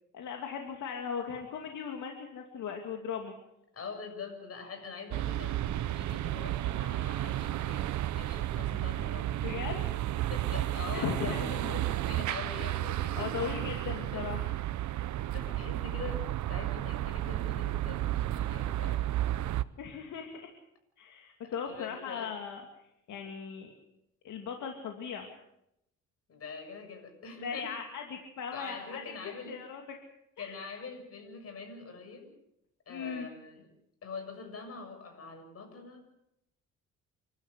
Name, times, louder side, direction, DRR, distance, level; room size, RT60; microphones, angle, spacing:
voice 1, 0.1-3.3 9.4-9.9 10.9-11.4 13.2-14.5 19.8-20.5 21.0-22.6 23.1-23.7 24.2-25.3 27.4-29.8 30.4-30.6 32.9-33.3, left 6 dB, 75° left, 3 dB, 2.7 m, -38 dB
voice 2, 3.7-9.3 10.2-13.6 14.1-14.3 15.3-19.1 21.4-22.3 26.3-27.8 28.5-29.6 30.4-32.3 32.9-33.7 34.0-36.1, left 4 dB, 50° left, 5 dB, 7.2 m, -44 dB
sound 1, 5.1-19.6, right 14 dB, 70° right, 0.9 m, -32 dB
30.0 x 12.5 x 8.3 m, 0.81 s
cardioid pair, 90°, 30 cm